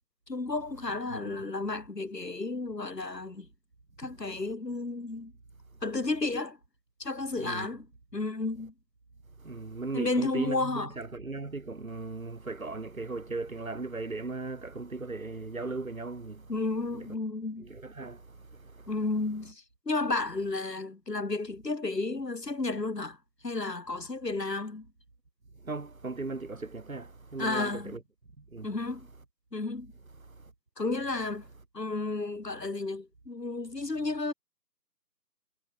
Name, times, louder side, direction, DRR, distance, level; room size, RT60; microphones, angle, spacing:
voice 1, 0.3-3.5 4.0-5.3 5.8-6.6 7.0-7.9 8.1-8.7 9.9-10.9 16.5-17.7 18.9-23.2 23.4-24.9 27.4-28.0 28.6-29.1 29.5-29.9 30.8-31.4 31.7-34.3, left 3 dB, 75° left, 3.1 m, -32 dB
voice 2, 1.1-1.4 4.0-4.1 7.3-7.7 9.4-16.5 16.9-17.1 17.6-18.9 25.6-28.0 28.4-28.7 30.2-30.5, right 3 dB, 55° right, 4.0 m, -38 dB
figure-of-eight pair, 170°, 49 cm